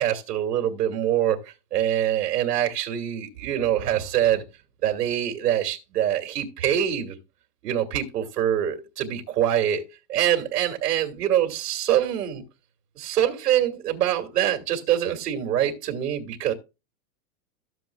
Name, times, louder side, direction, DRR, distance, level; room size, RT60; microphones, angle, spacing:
voice 1, 0.0-4.4 4.8-7.2 7.6-12.4 13.0-16.5, right 11 dB, 80° right, 2.4 m, -24 dB
14.0 x 7.7 x 2.3 m
supercardioid pair, 160°, 46 cm